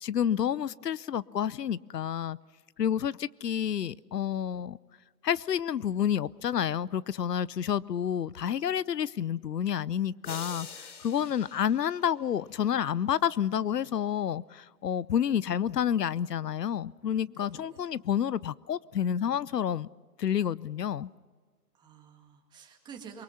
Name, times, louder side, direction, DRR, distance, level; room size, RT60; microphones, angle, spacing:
voice 1, 0.0-2.4 2.8-4.8 5.2-19.9 20.2-21.1, left 9 dB, 80° left, 21 dB, 0.7 m, -29 dB
sound 1, 10.2-12.6, left 5 dB, 65° left, 3.0 m, -45 dB
voice 2, 17.3-17.8 21.7-23.2, right 6 dB, 10° right, 3 dB, 1.8 m, -49 dB
24.0 x 23.5 x 5.8 m, 1.5 s
hypercardioid pair, 150°, 48 cm